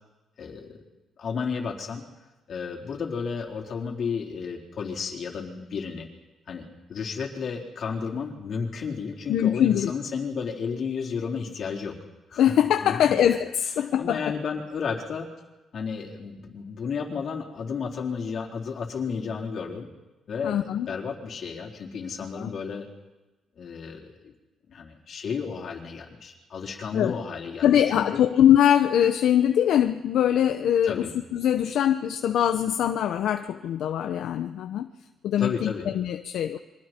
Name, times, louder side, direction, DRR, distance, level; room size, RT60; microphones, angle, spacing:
voice 1, 0.4-0.8 1.2-2.0 2.5-6.1 6.5-12.0 12.3-12.6 12.8-13.2 14.0-15.3 15.7-19.9 20.3-22.9 23.6-24.3 24.7-28.2 30.8-31.1 35.4-35.9, left 5 dB, 55° left, 0 dB, 4.1 m, -32 dB
voice 2, 9.3-9.9 12.4-14.2 20.4-20.9 22.4-22.5 26.9-27.2 27.6-34.9 35.2-36.6, left 10 dB, 75° left, 8 dB, 0.9 m, -22 dB
28.0 x 24.0 x 4.5 m, 1.1 s
cardioid pair, 90°, 0 cm